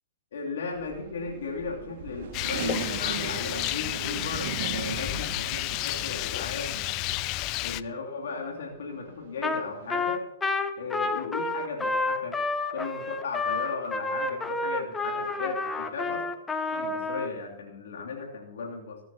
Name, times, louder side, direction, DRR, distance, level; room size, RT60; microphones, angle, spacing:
voice 1, 0.3-6.9 7.6-10.3 10.8-12.4 12.7-16.3 16.7-19.0, left 4 dB, 60° left, 0 dB, 2.9 m, -36 dB
sound 1, 0.7-7.6 8.0-10.0, right 8 dB, 50° right, 1.4 m, -39 dB
Rain, 2.3-7.8, left 18 dB, 35° left, 0.4 m, -31 dB
Trumpet, 9.4-9.6 9.9-17.3, left 3 dB, 10° left, 1.0 m, -29 dB
21.5 x 11.5 x 2.9 m, 0.93 s
figure-of-eight pair, 105°, 0 cm